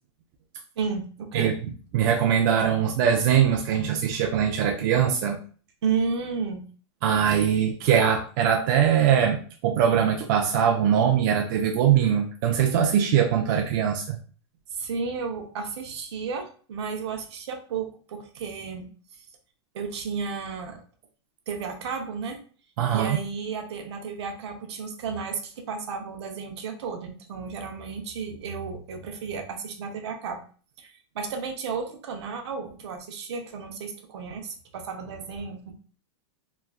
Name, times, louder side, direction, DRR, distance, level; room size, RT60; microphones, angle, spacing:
voice 1, 0.8-1.5 5.8-6.6 14.7-18.8 19.7-20.8 21.5-22.4 22.9-30.4 30.8-35.7, right 5 dB, 70° right, 4 dB, 0.7 m, -33 dB
voice 2, 1.9-5.4 7.0-9.4 9.6-14.2 22.8-23.2, right 8 dB, 40° right, 1 dB, 0.4 m, -22 dB
3.1 x 2.4 x 2.3 m, 0.41 s
supercardioid pair, 150°, 15 cm